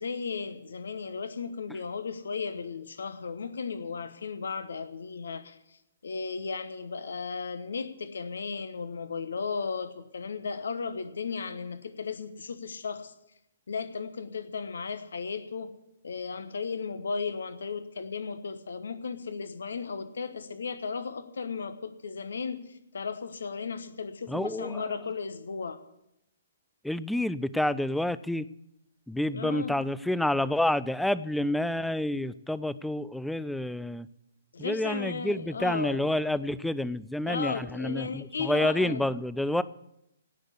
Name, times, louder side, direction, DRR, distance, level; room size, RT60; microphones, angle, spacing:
voice 1, 0.0-13.1 13.7-15.7 16.0-25.8 29.3-29.8 34.5-36.1 37.2-39.1, left 5 dB, 65° left, 12 dB, 1.1 m, -35 dB
voice 2, 24.3-24.9 26.8-28.5 29.1-34.1 34.6-39.6, left 1 dB, ahead, 18 dB, 0.4 m, -29 dB
18.0 x 6.5 x 8.2 m, 0.82 s
figure-of-eight pair, 125°, 0 cm